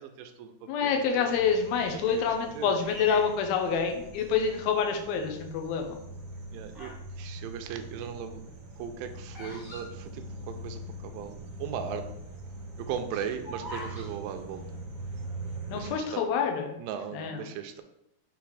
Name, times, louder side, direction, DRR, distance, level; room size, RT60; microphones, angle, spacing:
voice 1, 0.0-1.4 1.9-2.8 6.5-8.4 8.8-12.2 12.8-14.6 15.7-16.3 16.8-17.8, right 8 dB, 80° right, 7 dB, 2.1 m, -38 dB
voice 2, 0.7-6.0 15.7-16.8 17.1-17.4, left 6 dB, 80° left, 4 dB, 2.6 m, -27 dB
sound 1, 1.3-16.0, right 1 dB, 65° right, 1.4 m, -43 dB
Bird vocalization bird call bird song, 2.8-4.3 5.0-5.4 6.2-7.1 7.4-10.8 11.1-11.2 11.4-11.7 12.2-14.1, left 1 dB, ahead, 0.7 m, -44 dB
6.9 x 3.3 x 4.8 m, 0.80 s
omnidirectional pair, 4.4 m